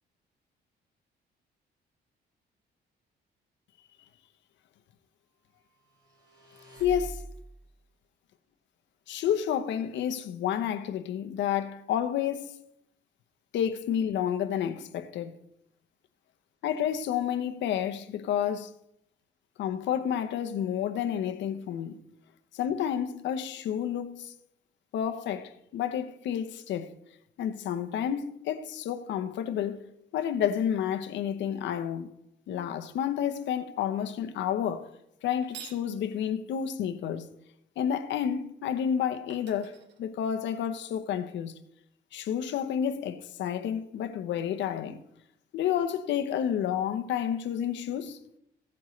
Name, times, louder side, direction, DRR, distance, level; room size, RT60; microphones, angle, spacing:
sound 1, 5.9-7.7, right 2 dB, 25° right, 4.2 m, -43 dB
voice 1, 6.8-7.3 9.1-12.5 13.5-15.4 16.6-18.7 19.6-22.0 22.5-24.3 24.9-26.9 27.4-29.8 30.1-32.1 32.5-34.9 35.2-37.3 37.8-41.5 42.1-45.0 45.5-48.2, left 9 dB, 85° left, 0.9 m, -30 dB
sound 2, 35.3-35.9 38.8-38.9 39.3-40.7, right 8 dB, 75° right, 1.4 m, -48 dB
15.5 x 8.7 x 3.2 m
cardioid pair, 150°, 18 cm